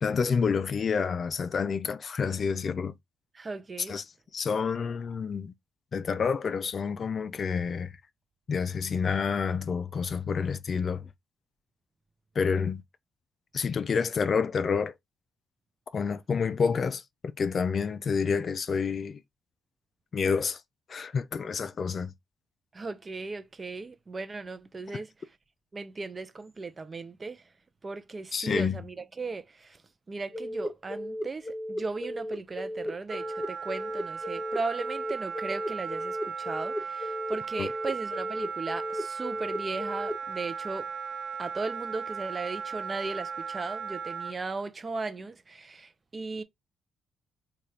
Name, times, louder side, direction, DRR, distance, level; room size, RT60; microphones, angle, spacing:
voice 1, 0.0-2.9 3.9-4.0 4.3-5.5 5.9-7.9 8.5-11.1 12.4-12.8 13.5-14.9 15.9-17.0 17.4-19.2 20.1-20.6 20.9-22.1 28.3-28.8 37.6-37.7, left 5 dB, 45° left, 0.4 m, -28 dB
voice 2, 3.3-4.0 22.7-25.4 25.7-27.5 27.8-29.8 30.1-40.9 41.4-46.4, right 3 dB, 30° right, 0.6 m, -37 dB
sound 1, 30.3-40.1, equal, 25° left, 1.1 m, -35 dB
Wind instrument woodwind instrument, 33.1-44.4, right 6 dB, 65° right, 1.1 m, -37 dB
3.3 x 2.4 x 4.2 m
cardioid pair, 90°, 0 cm